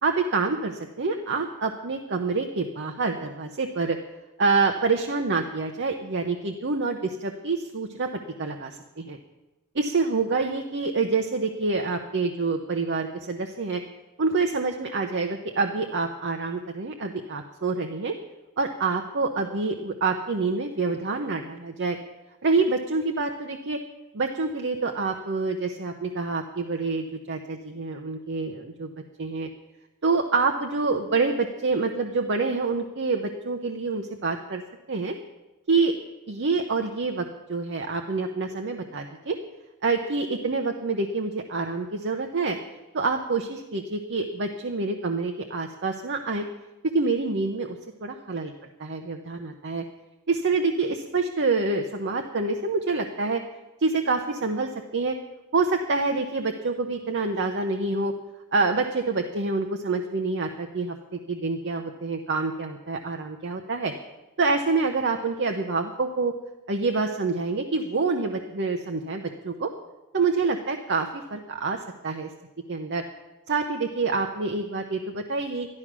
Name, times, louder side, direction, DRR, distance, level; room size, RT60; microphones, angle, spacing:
voice 1, 0.0-4.0 4.4-8.1 8.4-9.2 9.7-13.8 14.2-18.1 18.6-22.0 22.4-23.8 24.1-28.9 29.2-29.5 30.0-34.6 34.9-35.1 35.7-36.0 36.3-39.4 39.8-42.6 42.9-46.4 46.8-48.5 48.8-49.8 50.3-53.4 53.8-55.2 55.5-58.1 58.5-63.9 64.4-66.3 66.7-69.7 70.1-71.8 72.0-72.3 72.7-73.0 73.5-75.7, right 4 dB, 55° right, 4 dB, 0.9 m, -27 dB
13.0 x 12.0 x 6.1 m, 1.0 s
head